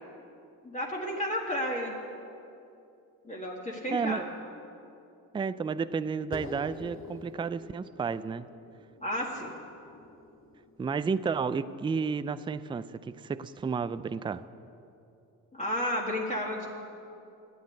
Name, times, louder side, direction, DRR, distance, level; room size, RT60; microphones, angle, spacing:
voice 1, 0.6-2.0 3.2-4.2 9.0-9.6 15.5-16.7, left 1 dB, 20° left, -3 dB, 1.8 m, -32 dB
voice 2, 3.9-4.2 5.3-8.5 10.8-14.4, right 5 dB, 15° right, 14 dB, 0.4 m, -32 dB
sound 1, 6.3-11.1, left 2 dB, 35° left, 1.9 m, -47 dB
12.0 x 8.5 x 9.6 m, 2.7 s
cardioid pair, 85°, 35 cm